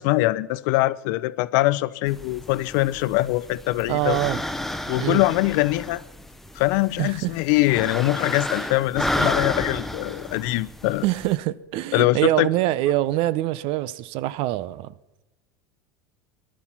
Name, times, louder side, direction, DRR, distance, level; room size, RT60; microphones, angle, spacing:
voice 1, 0.0-4.2 4.9-6.0 6.6-11.0 11.9-12.5, left 18 dB, 65° left, 0.6 m, -23 dB
sound 1, 2.1-11.3, left 1 dB, 5° left, 0.9 m, -31 dB
voice 2, 3.9-4.4 5.0-5.2 7.0-7.3 11.0-14.9, right 15 dB, 60° right, 0.7 m, -24 dB
18.5 x 11.5 x 6.0 m
hypercardioid pair, 90°, 11 cm